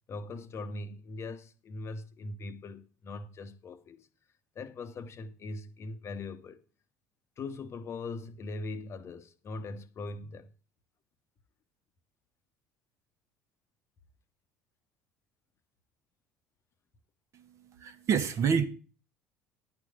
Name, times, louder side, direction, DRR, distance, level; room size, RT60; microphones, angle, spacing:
voice 1, 0.1-4.1 4.5-6.6 7.4-10.5, left 3 dB, 35° left, 1.0 m, -41 dB
voice 2, 17.3-18.7, right 7 dB, 40° right, 1.2 m, -28 dB
10.5 x 4.8 x 7.7 m
figure-of-eight pair, 60°, 8 cm